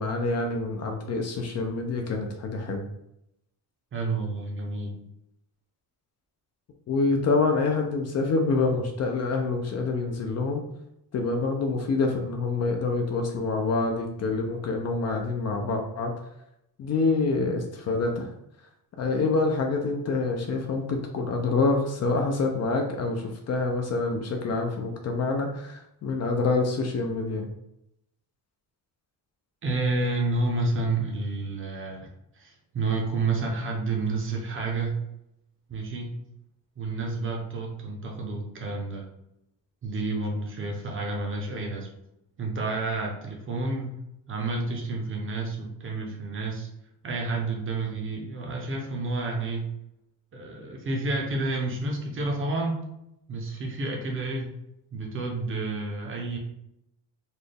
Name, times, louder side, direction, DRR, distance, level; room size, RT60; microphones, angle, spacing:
voice 1, 0.0-2.8 6.9-10.6 11.1-16.1 16.8-18.3 19.0-27.5, left 3 dB, 40° left, 3 dB, 0.4 m, -26 dB
voice 2, 3.9-4.9 29.6-32.1 32.4-35.0 35.7-36.2 36.8-39.1 39.8-41.9 42.4-43.9 44.3-46.7 47.0-49.6 50.3-52.8 53.3-54.5 54.9-56.4, right 3 dB, 30° right, 1 dB, 0.6 m, -30 dB
4.1 x 2.2 x 3.3 m, 0.82 s
cardioid pair, 180°, 40 cm